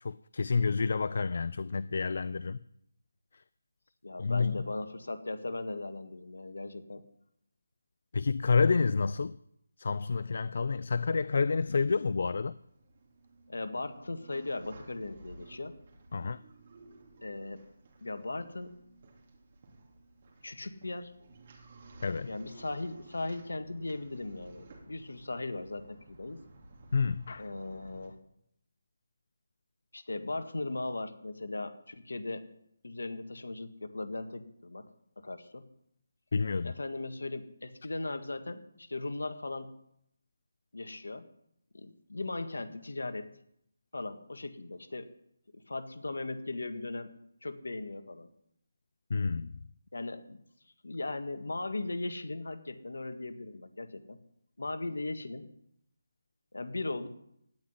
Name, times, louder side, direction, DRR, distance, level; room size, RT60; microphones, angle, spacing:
voice 1, 0.0-2.6 3.3-3.4 4.2-4.5 8.1-9.4 9.8-12.6 16.1-16.4 22.0-22.3 26.9-27.5 36.3-36.7 49.1-49.5, left 4 dB, 55° left, 17 dB, 0.4 m, -29 dB
voice 2, 4.0-7.0 13.5-15.8 17.2-17.6 18.0-18.8 20.4-21.1 22.3-26.4 27.4-28.2 29.9-32.5 32.8-34.9 35.2-35.7 36.6-39.8 40.7-41.3 41.7-43.3 43.9-45.1 45.5-47.1 47.4-48.3 49.9-50.4 50.8-54.2 54.6-55.5 56.5-57.1, left 2 dB, 85° left, 9 dB, 1.7 m, -38 dB
sound 1, 11.9-28.1, right 2 dB, 40° right, 3.0 m, -55 dB
17.0 x 6.0 x 9.7 m, 0.74 s
figure-of-eight pair, 165°, 0 cm